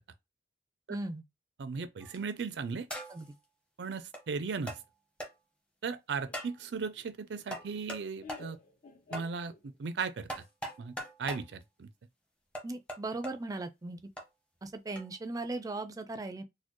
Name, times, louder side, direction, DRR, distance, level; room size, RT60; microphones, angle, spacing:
voice 1, 0.9-1.2 3.1-3.3 12.6-14.0 14.6-16.4, right 2 dB, 20° right, 0.4 m, -38 dB
voice 2, 1.6-2.9 3.8-4.7 5.8-8.6 9.1-9.5 9.8-10.3 10.8-11.9, right 5 dB, 75° right, 0.4 m, -37 dB
sound 1, 2.0-2.3 2.9-3.3 4.1-4.2 4.7-4.8 5.2-5.3 6.3-6.6 7.5-8.0 8.3-8.5 9.1-9.3 10.3-11.5 12.5-13.3 14.2-14.3 15.0-15.1, equal, 5° left, 0.8 m, -40 dB
Laughter, 6.3-9.9, left 4 dB, 50° left, 1.0 m, -53 dB
4.2 x 2.1 x 3.0 m
head